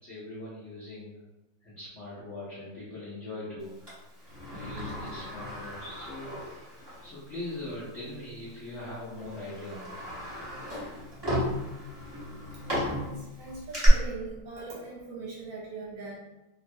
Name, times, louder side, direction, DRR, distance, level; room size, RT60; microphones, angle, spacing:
voice 1, 0.0-1.2 1.6-4.0 4.4-6.7 7.0-10.0, left 1 dB, 65° left, -10 dB, 0.7 m, -41 dB
Sliding door, 3.9-7.1 7.5-7.6 8.5-8.7 9.2-13.9, equal, 35° right, 0.4 m, -36 dB
voice 2, 12.6-16.2, right 3 dB, 70° right, -7 dB, 1.4 m, -41 dB
3.3 x 2.1 x 2.6 m, 1.0 s
omnidirectional pair, 2.3 m